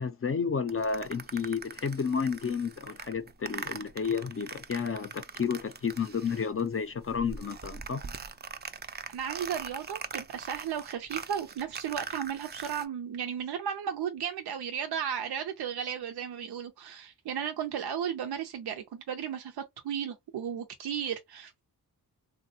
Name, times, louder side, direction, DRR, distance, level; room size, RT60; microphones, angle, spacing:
voice 1, 0.0-8.0, left 6 dB, 35° left, 0.4 m, -31 dB
sound 1, 0.7-6.7 7.0-12.9, right 5 dB, 30° right, 0.4 m, -42 dB
voice 2, 9.1-21.6, right 8 dB, 80° right, 0.5 m, -35 dB
3.5 x 2.1 x 2.6 m
wide cardioid pair, 110°, 38 cm